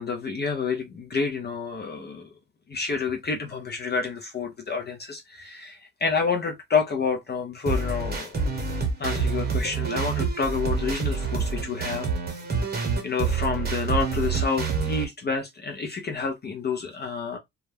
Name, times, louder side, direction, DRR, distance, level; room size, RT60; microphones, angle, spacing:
voice 1, 0.0-2.3 2.7-8.4 9.0-12.1 13.0-17.4, left 5 dB, 30° left, 0.6 m, -29 dB
sound 1, 7.7-15.1, right 5 dB, 30° right, 1.0 m, -27 dB
2.3 x 2.1 x 3.2 m
cardioid pair, 90°, 33 cm